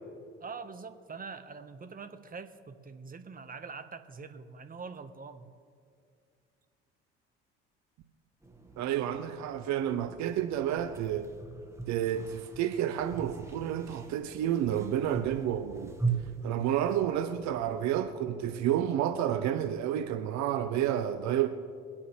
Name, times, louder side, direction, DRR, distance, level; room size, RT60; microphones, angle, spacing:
voice 1, 0.4-5.5, right 5 dB, 30° right, 1.3 m, -44 dB
sound 1, 8.4-18.0, right 4 dB, 10° right, 1.7 m, -40 dB
voice 2, 8.8-11.3 11.9-16.0 16.4-21.5, right 10 dB, 65° right, 0.9 m, -30 dB
23.5 x 8.6 x 3.3 m
hypercardioid pair, 60°, 30 cm